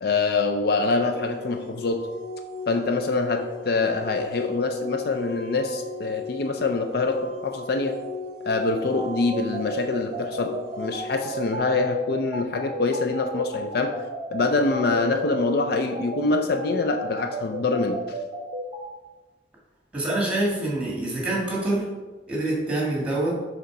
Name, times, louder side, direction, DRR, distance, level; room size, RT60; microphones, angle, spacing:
voice 1, 0.0-2.0 2.7-7.9 8.4-13.9 14.3-18.0, left 3 dB, 60° left, 5 dB, 0.4 m, -25 dB
sound 1, 1.0-11.6, left 3 dB, 35° left, 1.8 m, -38 dB
sound 2, 8.9-18.8, right 2 dB, 35° right, 0.7 m, -33 dB
voice 2, 19.9-21.8 22.3-23.4, right 2 dB, 5° right, -4 dB, 1.7 m, -25 dB
6.7 x 3.5 x 4.8 m, 1.3 s
head